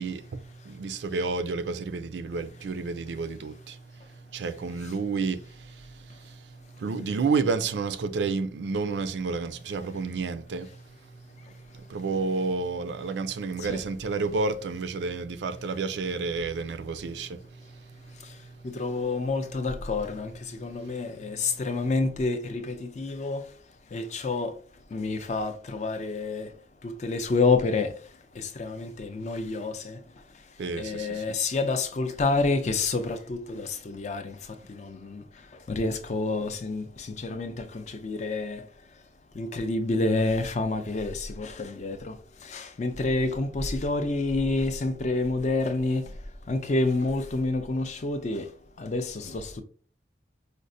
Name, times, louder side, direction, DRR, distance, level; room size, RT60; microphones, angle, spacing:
voice 1, 0.0-18.7 20.6-21.5 30.6-31.2, right 4 dB, 75° right, 0.4 m, -31 dB
voice 2, 18.2-23.5 23.9-24.6 24.9-26.5 26.8-30.0 30.3-30.4 30.8-38.7 39.3-48.5 48.8-49.6, left 3 dB, 40° left, 0.4 m, -29 dB
5.0 x 2.1 x 2.6 m
head